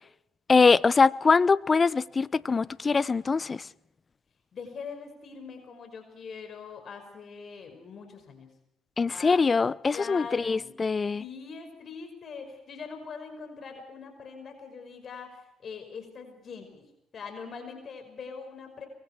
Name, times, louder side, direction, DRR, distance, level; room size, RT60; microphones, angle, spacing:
voice 1, 0.5-3.7 9.0-11.2, left 4 dB, 30° left, 0.8 m, -23 dB
voice 2, 4.5-8.5 9.1-9.4 9.9-10.8 11.2-18.9, left 5 dB, 50° left, 5.6 m, -42 dB
24.5 x 23.0 x 4.6 m
supercardioid pair, 75°, 0 cm